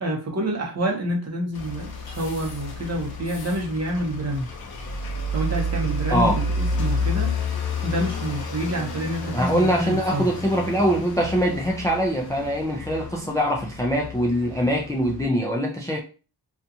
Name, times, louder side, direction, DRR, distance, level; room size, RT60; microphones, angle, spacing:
voice 1, 0.0-4.5 5.3-7.4 7.8-10.3, right 1 dB, 40° right, 0.8 m, -27 dB
sound 1, 1.5-15.3, left 1 dB, 70° left, 0.6 m, -30 dB
voice 2, 9.3-16.0, equal, 10° left, 0.3 m, -23 dB
2.5 x 2.3 x 2.7 m
wide cardioid pair, 135°, 39 cm